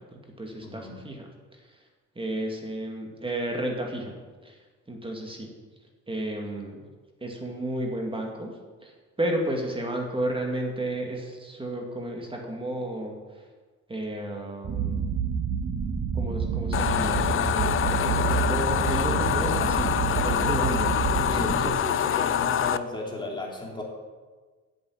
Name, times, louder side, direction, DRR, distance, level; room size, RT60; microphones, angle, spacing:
voice 1, 0.0-1.9 2.2-4.1 4.4-4.6 4.9-5.5 6.1-6.9 7.2-13.5 13.9-15.0 16.1-22.3, right 1 dB, 15° right, 1 dB, 2.3 m, -33 dB
voice 2, 0.6-0.9 21.3-23.8, left 1 dB, 15° left, -1 dB, 2.8 m, -34 dB
sound 1, 14.6-21.7, right 6 dB, 45° right, 1.0 m, -28 dB
sound 2, 16.7-22.8, left 10 dB, 45° left, 0.5 m, -25 dB
7.8 x 7.6 x 8.6 m, 1.4 s
cardioid pair, 90°, 30 cm